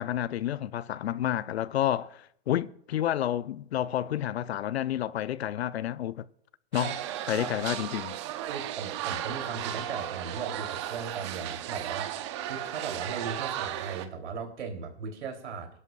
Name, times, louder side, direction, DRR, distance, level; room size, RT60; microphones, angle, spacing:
voice 1, 0.0-6.2 6.7-7.0 7.3-8.2, left 11 dB, 70° left, 0.6 m, -30 dB
sound 1, 6.7-14.1, right 11 dB, 25° right, 0.6 m, -35 dB
voice 2, 8.5-12.2 12.5-15.7, right 5 dB, 80° right, 3.5 m, -38 dB
24.0 x 11.0 x 2.5 m
hypercardioid pair, 155°, 34 cm